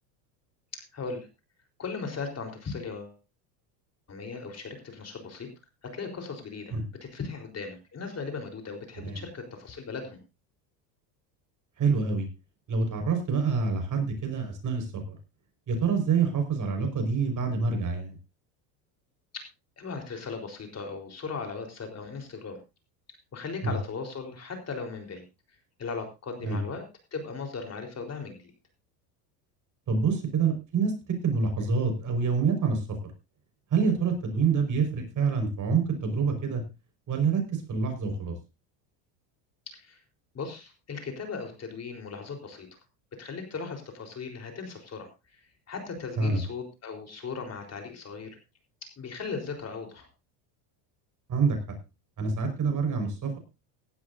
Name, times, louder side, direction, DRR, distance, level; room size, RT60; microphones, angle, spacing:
voice 1, 0.7-1.3 1.8-3.2 4.1-5.5 5.8-10.2 19.3-19.4 19.8-22.6 23.3-25.3 25.8-26.8 27.1-28.5 39.7-40.0 40.3-42.7 43.2-45.4 45.7-48.4 48.8-50.1, left 4 dB, 30° left, 4 dB, 4.1 m, -38 dB
voice 2, 11.8-12.3 12.7-15.2 15.7-18.2 23.6-23.8 26.4-26.6 29.9-32.8 33.7-36.6 37.1-38.4 46.2-46.4 51.3-51.8 52.2-53.4, right 5 dB, 40° right, 5 dB, 5.3 m, -27 dB
17.0 x 12.5 x 2.7 m, 0.27 s
supercardioid pair, 105°, 48 cm